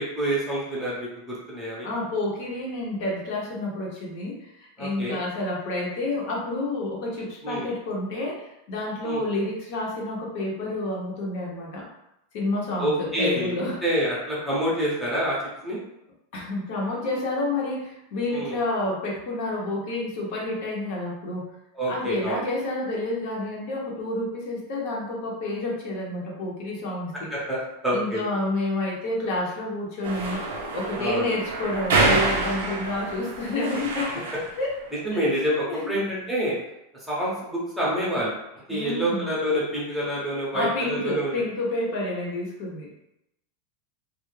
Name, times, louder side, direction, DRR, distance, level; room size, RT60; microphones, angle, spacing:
voice 1, 0.0-1.9 4.8-5.2 7.4-7.7 9.0-9.2 12.8-13.6 13.8-15.4 15.6-15.8 18.3-18.6 21.7-22.4 27.3-27.6 27.8-28.2 31.0-31.3 35.0-36.6 37.1-38.4 38.7-41.3, right 1 dB, 5° right, -7 dB, 0.7 m, -27 dB
voice 2, 1.8-11.9 12.3-13.8 16.3-21.5 21.9-27.3 27.9-30.4 30.7-34.3 34.6-34.7 35.1-35.4 35.7-35.9 38.7-39.3 40.5-42.9, left 2 dB, 50° left, -3 dB, 0.7 m, -29 dB
sound 1, 30.0-34.6, right 3 dB, 90° right, 0.5 m, -27 dB
2.2 x 2.0 x 3.1 m, 0.84 s
supercardioid pair, 160°, 0 cm